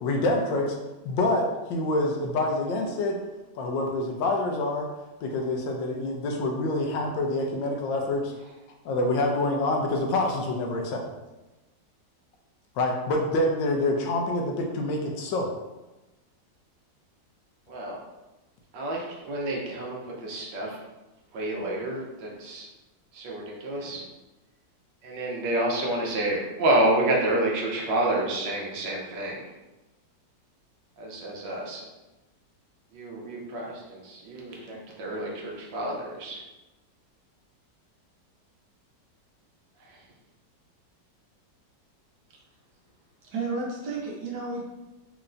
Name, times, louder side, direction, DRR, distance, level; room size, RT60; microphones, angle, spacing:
voice 1, 0.0-0.8 1.0-3.2 3.5-4.9 5.2-8.3 8.8-11.0 12.8-15.5, left 2 dB, 85° left, 2 dB, 1.4 m, -26 dB
voice 2, 17.7-18.0 18.7-20.8 21.3-22.7 23.1-24.0 25.0-29.4 31.0-31.8 32.9-36.4 39.8-40.0, right 1 dB, 85° right, -1 dB, 1.5 m, -29 dB
voice 3, 43.2-44.6, right 3 dB, 65° right, -2 dB, 1.4 m, -32 dB
4.4 x 2.9 x 2.5 m, 1.1 s
omnidirectional pair, 1.9 m